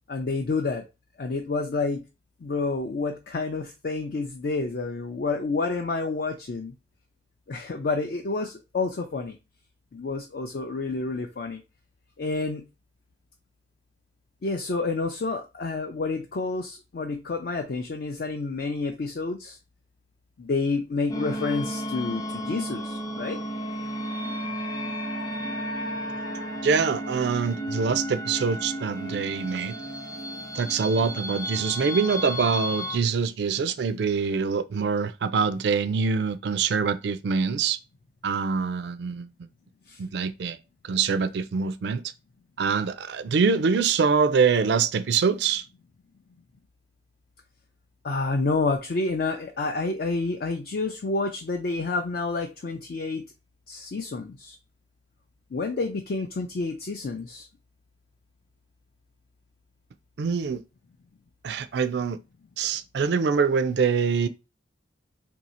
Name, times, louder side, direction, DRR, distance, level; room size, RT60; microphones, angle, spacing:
voice 1, 0.1-0.8 1.2-2.0 2.4-6.7 7.5-9.4 9.9-11.6 12.2-12.6 14.4-19.6 20.4-23.4 39.9-40.0 48.0-53.2 53.7-54.6 55.5-57.5, left 3 dB, 50° left, 0.4 m, -29 dB
sound 1, 21.1-33.0, equal, 20° left, 0.7 m, -33 dB
voice 2, 26.6-29.8 30.5-37.8 38.2-39.3 40.0-40.6 40.8-42.0 42.6-45.6 60.2-60.6 61.4-62.2 62.6-64.3, right 5 dB, 60° right, 0.3 m, -24 dB
2.7 x 2.7 x 4.1 m
head